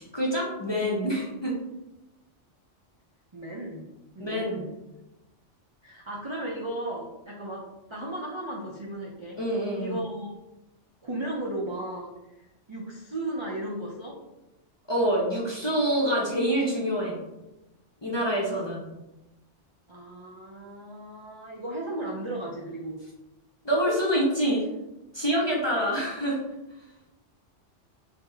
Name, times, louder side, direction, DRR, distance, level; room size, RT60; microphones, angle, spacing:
voice 1, 0.1-1.5 4.2-4.6 9.4-10.0 14.9-17.2 18.0-18.8 23.6-24.7 25.1-26.4, equal, 30° left, -4 dB, 0.5 m, -26 dB
voice 2, 3.3-3.9 4.1-4.7 5.8-9.4 9.8-10.3 11.0-12.1 12.7-14.2 18.1-18.2 19.9-23.0, right 1 dB, 50° right, -3 dB, 0.3 m, -35 dB
4.4 x 2.1 x 3.8 m, 0.97 s
omnidirectional pair, 1.3 m